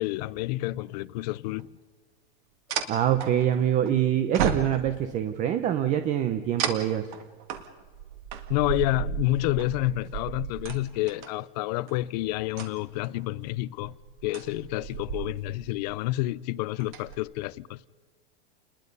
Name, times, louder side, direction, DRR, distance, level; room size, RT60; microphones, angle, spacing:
voice 1, 0.0-1.7 8.5-14.0 14.2-17.8, left 17 dB, 45° left, 0.6 m, -29 dB
sound 1, 1.6-1.7 2.7-3.9 4.3-5.2 6.6-11.3 11.9-12.1 12.4-13.2 13.8-15.6 15.9-16.2 16.7-17.2, right 8 dB, 50° right, 2.1 m, -34 dB
voice 2, 2.9-7.1, right 10 dB, 25° right, 0.8 m, -25 dB
28.5 x 21.0 x 5.5 m
supercardioid pair, 160°, 30 cm